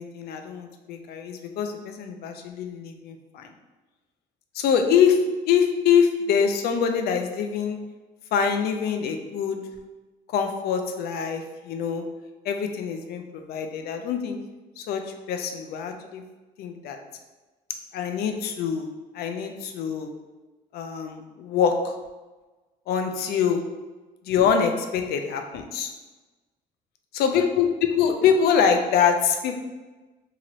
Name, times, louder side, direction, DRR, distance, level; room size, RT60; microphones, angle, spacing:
voice 1, 0.0-3.5 4.5-5.2 5.5-7.8 8.3-9.6 10.3-12.1 12.5-14.4 14.8-15.0 15.3-16.2 16.6-17.0 17.9-18.9 19.1-20.1 20.7-21.9 22.9-23.6 24.3-25.9 27.1-29.6, left 7 dB, 70° left, 5 dB, 0.4 m, -24 dB
2.8 x 2.5 x 2.9 m, 1.2 s
cardioid pair, 110°, 17 cm